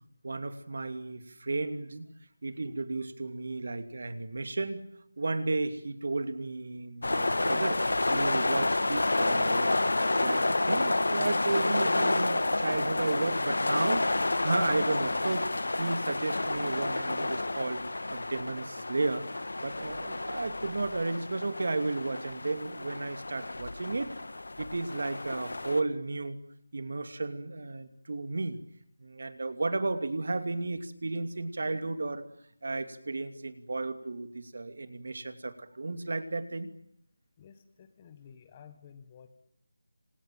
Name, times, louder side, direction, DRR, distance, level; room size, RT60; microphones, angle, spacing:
voice 1, 0.2-2.1 2.4-4.8 5.2-7.8 8.1-9.9 10.2-15.5 15.8-19.3 19.6-24.1 24.6-26.4 26.7-28.6 29.0-32.2 32.6-36.7, right 3 dB, 50° right, 10 dB, 2.7 m, -33 dB
sound 1, 7.0-25.8, left 2 dB, 85° left, 1.6 m, -30 dB
voice 2, 37.4-39.3, left 7 dB, 15° left, 10 dB, 1.5 m, -53 dB
27.5 x 27.0 x 7.8 m, 0.70 s
figure-of-eight pair, 175°, 0 cm